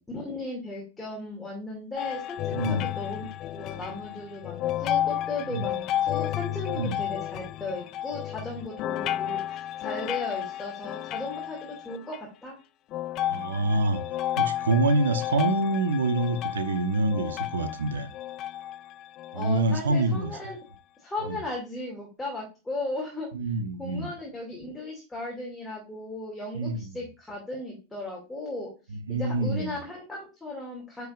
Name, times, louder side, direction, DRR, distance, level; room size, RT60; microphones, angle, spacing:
voice 1, 0.1-3.2 3.5-12.6 19.3-20.6 21.0-23.3 23.8-28.7 29.1-31.1, left 2 dB, 10° left, 2.5 m, -36 dB
sound 1, 2.0-12.2 12.9-19.8 20.5-20.6 21.2-21.3, left 12 dB, 35° left, 0.3 m, -32 dB
voice 2, 2.5-2.9 5.5-5.7 6.7-7.0 13.3-14.0 14.4-18.1 19.3-20.3 21.3-21.4 23.3-24.1 26.5-27.0 28.9-29.8, right 2 dB, 65° right, 0.9 m, -26 dB
10.0 x 4.8 x 2.5 m
figure-of-eight pair, 90°, 0 cm